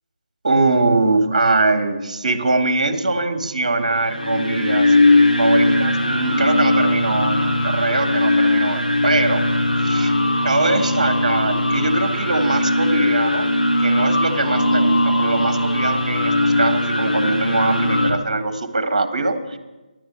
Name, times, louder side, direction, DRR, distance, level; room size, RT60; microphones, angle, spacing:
voice 1, 0.4-4.9 5.4-9.4 9.8-10.1 10.4-13.5 13.8-19.6, right 2 dB, 50° right, 7 dB, 1.5 m, -22 dB
sound 1, 3.8-18.1, left 1 dB, 80° left, 2.5 m, -19 dB
10.5 x 10.0 x 8.5 m, 1.1 s
figure-of-eight pair, 150°, 5 cm